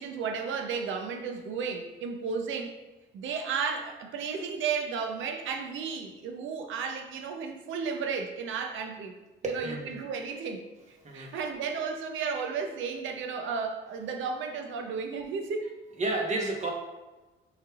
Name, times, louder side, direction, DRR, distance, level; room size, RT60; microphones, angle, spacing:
voice 1, 0.0-2.8 3.1-9.2 9.5-15.7, right 5 dB, 75° right, 5 dB, 0.6 m, -33 dB
voice 2, 9.4-9.9 11.0-11.3 16.0-16.7, right 2 dB, 35° right, 0 dB, 1.1 m, -31 dB
6.2 x 3.3 x 2.4 m, 1.1 s
cardioid pair, 90°, 20 cm